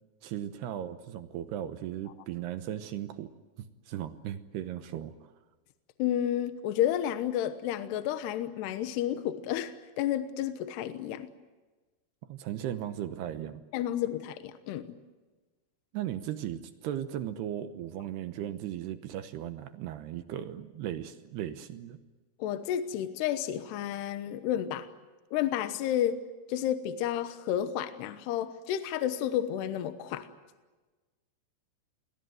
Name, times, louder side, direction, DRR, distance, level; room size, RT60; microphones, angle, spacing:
voice 1, 0.2-3.3 3.9-5.1 12.3-13.6 15.9-22.0, right 11 dB, 75° right, 10 dB, 2.8 m, -37 dB
voice 2, 6.0-11.3 13.7-14.9 22.4-24.9 25.3-26.2 26.5-30.3, left 11 dB, 75° left, 10 dB, 3.0 m, -31 dB
28.5 x 21.5 x 7.9 m, 1.2 s
omnidirectional pair, 5.2 m